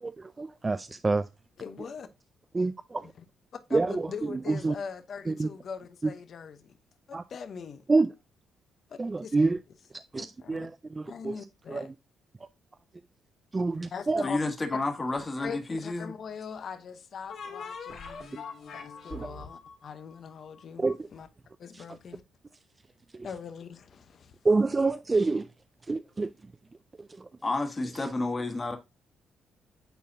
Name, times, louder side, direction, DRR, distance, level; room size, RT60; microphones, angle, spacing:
voice 1, 0.0-1.3 2.5-3.1 3.7-4.7 5.3-5.5 6.0-6.1 7.1-7.2 7.9-8.1 9.0-9.6 10.1-11.4 11.7-11.9 13.5-14.2 19.1-19.3 20.8-21.1 21.7-21.8 23.1-23.3 24.4-25.5 25.9-26.3 27.0-27.3, right 3 dB, 25° right, 0.4 m, -27 dB
voice 2, 1.6-2.1 3.7-6.8 7.1-7.8 8.9-9.3 10.2-10.7 11.1-11.9 13.9-14.4 14.7-14.8 15.4-18.2 18.7-20.9 21.1-21.3 21.6-22.2 23.2-24.3, left 6 dB, 55° left, 0.9 m, -41 dB
voice 3, 14.2-16.1 27.4-28.8, left 2 dB, 25° left, 1.6 m, -30 dB
sound 1, 15.2-16.0 17.3-20.9, left 4 dB, 70° left, 2.6 m, -43 dB
9.2 x 4.1 x 2.7 m
cardioid pair, 90°, 0 cm